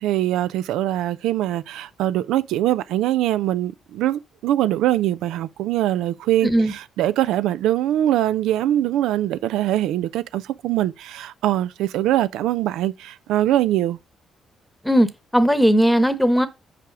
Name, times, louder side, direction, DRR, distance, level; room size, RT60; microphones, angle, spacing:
voice 1, 0.0-14.0, right 13 dB, 90° right, 0.4 m, -22 dB
voice 2, 6.4-6.7 14.8-15.1 15.3-16.5, equal, 5° left, 1.0 m, -17 dB
5.8 x 4.9 x 6.0 m
cardioid pair, 90°, 0 cm